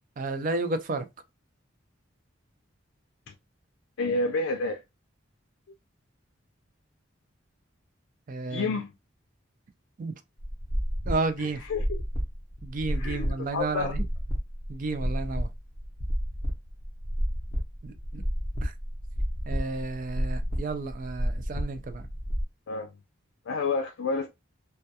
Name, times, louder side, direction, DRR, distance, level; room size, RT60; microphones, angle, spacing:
voice 1, 0.2-1.1 8.3-8.7 10.0-10.1 11.1-11.6 12.6-14.0 14.7-15.5 17.8-18.2 18.6-18.7 19.5-22.1, right 3 dB, 40° right, 0.3 m, -32 dB
voice 2, 4.0-4.8 8.5-8.9 11.4-12.0 12.9-14.0 22.7-22.9 23.5-24.3, left 3 dB, 90° left, 0.4 m, -30 dB
sound 1, 10.4-22.4, equal, 20° left, 0.5 m, -31 dB
2.2 x 2.2 x 2.7 m
head